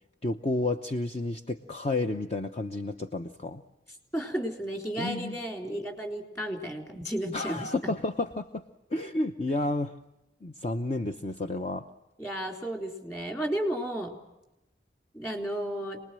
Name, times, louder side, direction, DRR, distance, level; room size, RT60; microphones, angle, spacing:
voice 1, 0.2-3.6 5.0-5.4 7.3-8.6 8.9-10.0 10.4-11.9, left 2 dB, 35° left, 7 dB, 0.8 m, -31 dB
voice 2, 4.1-7.9 12.2-14.2 15.1-16.0, right 1 dB, 15° left, 3 dB, 3.6 m, -33 dB
27.5 x 20.5 x 7.6 m, 0.95 s
head